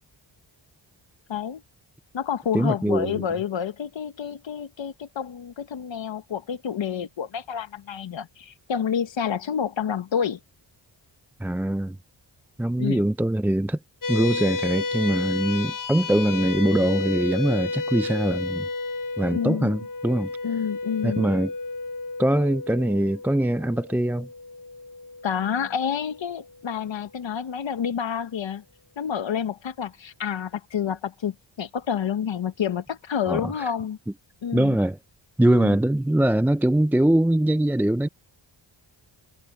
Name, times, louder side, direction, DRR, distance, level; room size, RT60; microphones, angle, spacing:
voice 1, 1.3-1.6 2.1-10.4 12.8-13.0 19.3-19.8 20.4-21.3 25.2-28.6 29.0-34.0 34.4-34.8 35.5-35.8, left 8 dB, 70° left, 1.4 m, -29 dB
voice 2, 2.5-3.2 11.4-12.0 12.6-13.8 14.1-18.7 19.2-20.3 21.0-21.5 22.2-24.3 33.3-33.7 34.5-35.0 35.4-38.1, right 1 dB, 5° right, 0.4 m, -22 dB
sound 1, 14.0-26.7, left 3 dB, 45° left, 1.1 m, -32 dB
cardioid pair, 65°, 47 cm